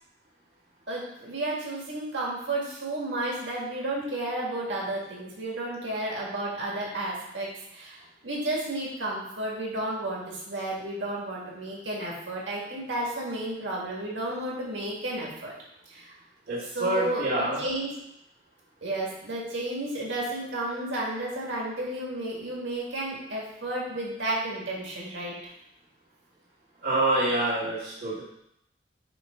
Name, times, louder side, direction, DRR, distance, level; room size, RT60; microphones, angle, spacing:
voice 1, 0.9-15.5 15.9-16.1 16.7-17.3 17.6-17.9 18.8-25.5, right 1 dB, 85° right, -3 dB, 1.8 m, -32 dB
voice 2, 16.5-17.6 26.8-28.2, right 1 dB, 60° right, -8 dB, 2.0 m, -26 dB
8.9 x 3.0 x 3.7 m, 0.78 s
head